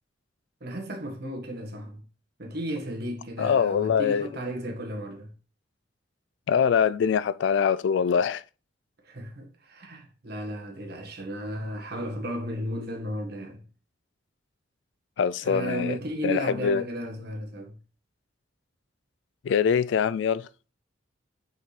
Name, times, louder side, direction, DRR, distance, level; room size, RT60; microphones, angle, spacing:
voice 1, 0.6-2.0 2.4-5.3 9.0-13.6 15.4-17.8, equal, 55° right, 1.5 m, -34 dB
voice 2, 3.4-4.3 6.5-8.4 15.2-16.0 16.2-16.8 19.4-20.5, left 7 dB, 65° left, 0.3 m, -23 dB
5.8 x 5.5 x 3.3 m
head